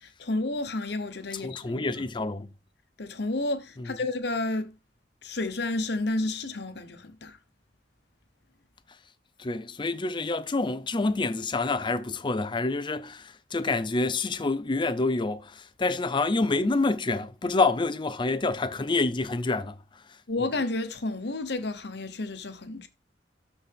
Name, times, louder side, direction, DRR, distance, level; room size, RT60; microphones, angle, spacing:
voice 1, 0.0-2.0 3.0-4.7 5.2-7.4 20.3-22.9, left 2 dB, 65° left, 1.1 m, -31 dB
voice 2, 1.3-2.5 3.8-4.0 9.4-19.8, left 3 dB, 25° left, 0.5 m, -27 dB
12.5 x 4.2 x 3.5 m
head